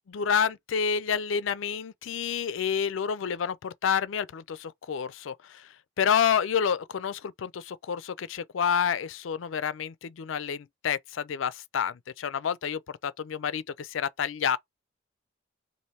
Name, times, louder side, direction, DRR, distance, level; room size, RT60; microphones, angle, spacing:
voice 1, 0.1-5.3 6.0-14.6, left 7 dB, 90° left, 0.4 m, -29 dB
3.2 x 2.6 x 4.2 m
head